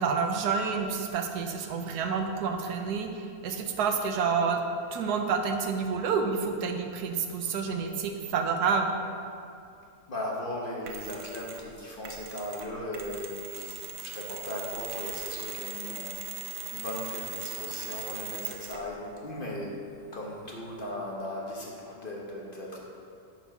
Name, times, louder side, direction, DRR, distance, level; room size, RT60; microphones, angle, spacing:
voice 1, 0.0-3.1 3.4-4.6 4.9-8.9, right 5 dB, 85° right, 5 dB, 1.3 m, -28 dB
voice 2, 10.1-16.1 16.7-19.8 20.1-22.8, left 1 dB, 35° left, -3 dB, 1.2 m, -37 dB
Mechanisms, 10.9-11.7 12.0-18.9, right 6 dB, 65° right, 1.2 m, -39 dB
9.4 x 4.7 x 5.9 m, 2.5 s
omnidirectional pair, 1.7 m